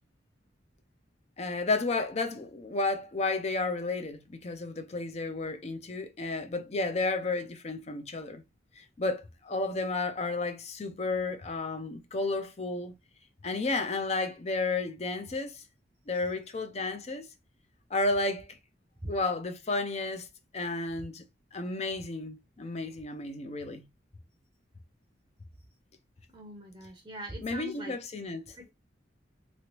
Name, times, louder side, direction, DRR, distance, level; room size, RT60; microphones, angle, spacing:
voice 1, 1.4-8.4 8.8-12.9 13.4-15.6 16.1-17.3 17.9-18.6 19.1-20.3 20.5-21.2 21.5-23.9 27.4-28.4, left 3 dB, 35° left, 0.5 m, -32 dB
voice 2, 26.3-28.0, right 1 dB, 20° right, 0.6 m, -41 dB
3.1 x 2.9 x 2.9 m
head